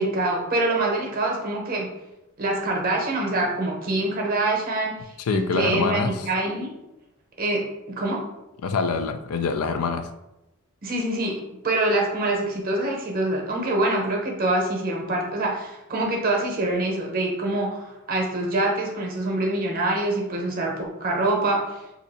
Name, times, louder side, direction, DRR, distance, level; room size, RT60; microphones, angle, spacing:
voice 1, 0.0-1.9 2.4-6.7 7.4-8.2 10.8-11.4 11.6-21.8, right 2 dB, 40° right, 0 dB, 0.7 m, -25 dB
voice 2, 5.2-6.3 8.6-10.1, left 4 dB, 85° left, 8 dB, 0.4 m, -25 dB
2.8 x 2.5 x 4.0 m, 0.93 s
head